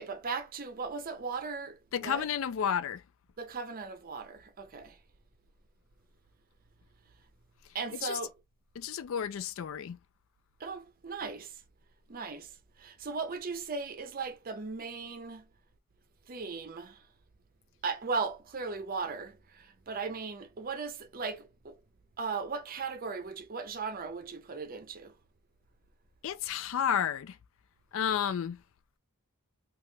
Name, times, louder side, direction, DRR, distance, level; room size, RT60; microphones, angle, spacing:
voice 1, 0.0-2.3 3.4-5.0 7.7-8.3 10.6-11.5 12.1-12.5 12.8-15.4 16.3-17.0 17.8-21.7 22.2-25.1, right 4 dB, 40° right, 0.6 m, -37 dB
voice 2, 1.9-3.0 7.9-8.2 8.8-10.0 26.2-27.4 27.9-28.6, left 8 dB, 65° left, 0.3 m, -31 dB
2.9 x 2.4 x 3.2 m
head